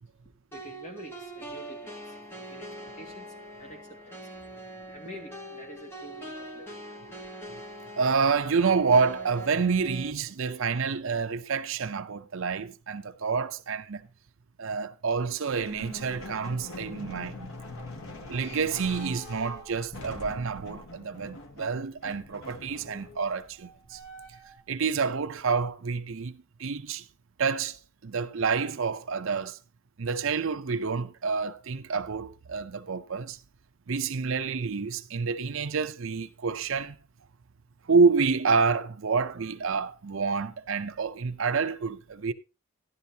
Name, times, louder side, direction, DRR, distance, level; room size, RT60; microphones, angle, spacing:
voice 1, 0.5-4.2 4.9-6.8 7.1-7.2, equal, 35° left, 1.9 m, -47 dB
sound 1, 0.5-10.1, right 1 dB, 10° left, 1.2 m, -43 dB
voice 2, 8.0-14.1 14.6-17.5 18.3-24.0 24.7-26.3 26.6-27.0 27.4-29.6 30.0-33.4 33.9-37.0 37.9-42.3, right 5 dB, 65° right, 0.6 m, -28 dB
sound 2, 15.5-24.6, left 2 dB, 65° left, 1.4 m, -43 dB
12.5 x 11.0 x 2.8 m
head